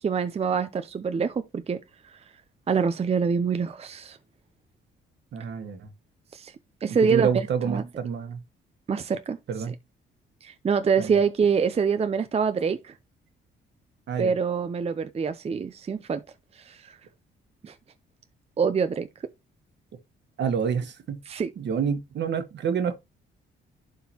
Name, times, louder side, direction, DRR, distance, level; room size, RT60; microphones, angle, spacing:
voice 1, 0.0-1.8 2.1-2.2 2.7-4.2 6.3-6.5 6.8-7.3 7.7-7.8 8.9-9.4 9.7-9.8 10.4-12.9 14.2-16.2 16.5-17.0 17.6-17.7 18.6-19.1 21.3-21.5, right 6 dB, 30° right, 0.6 m, -25 dB
voice 2, 5.3-5.9 6.9-8.4 9.5-9.7 11.0-11.2 14.1-14.3 20.4-21.2 21.6-23.0, right 7 dB, 60° right, 1.4 m, -28 dB
11.5 x 3.8 x 2.9 m
cardioid pair, 90°, 20 cm